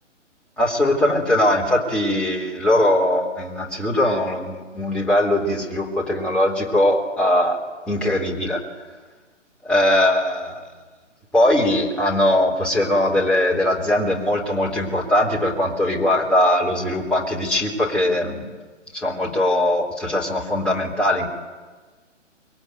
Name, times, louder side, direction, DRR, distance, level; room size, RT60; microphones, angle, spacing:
voice 1, 0.6-7.6 7.9-8.6 9.6-10.6 11.3-18.5 18.9-21.3, left 1 dB, 5° left, -4 dB, 3.5 m, -20 dB
26.5 x 22.5 x 9.2 m, 1.3 s
figure-of-eight pair, 140°, 37 cm